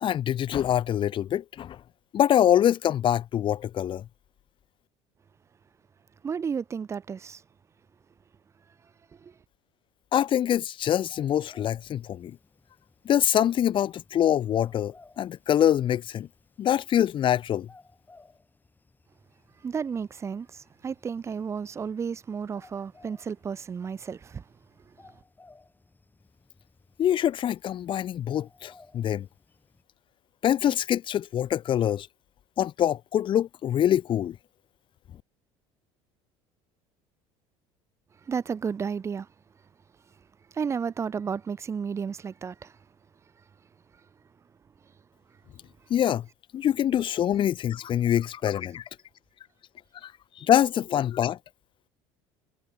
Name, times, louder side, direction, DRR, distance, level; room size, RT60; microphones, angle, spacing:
voice 1, 0.0-1.8 2.1-4.0 10.1-12.4 13.0-16.3 16.6-17.7 27.0-29.3 30.4-32.1 32.6-34.4 45.9-46.3 46.5-48.8 50.0-50.1 50.4-51.4, left 10 dB, 40° left, 0.9 m, -24 dB
voice 2, 6.2-7.4 9.2-9.3 19.6-24.4 38.3-39.3 40.5-42.7, right 6 dB, 25° right, 0.5 m, -32 dB
sound 1, 11.0-29.8, left 3 dB, 15° left, 7.9 m, -59 dB
supercardioid pair, 110°, 12 cm